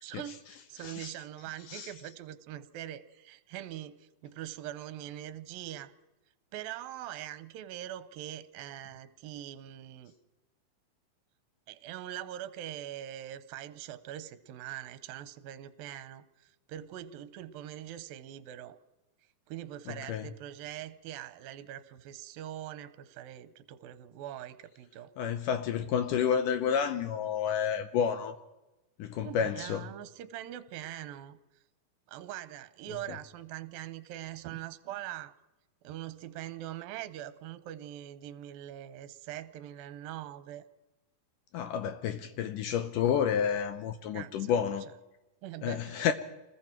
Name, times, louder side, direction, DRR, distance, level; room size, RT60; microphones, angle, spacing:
voice 1, 0.0-5.9 6.5-10.1 11.7-18.8 19.5-25.1 29.2-31.4 32.1-35.3 35.8-40.7 44.1-44.5 45.4-46.0, right 12 dB, 75° right, 2.5 m, -43 dB
voice 2, 19.9-20.3 25.2-28.4 29.0-29.8 41.5-44.8 45.6-46.1, left 8 dB, 75° left, 2.1 m, -30 dB
28.0 x 20.5 x 4.5 m
omnidirectional pair, 4.4 m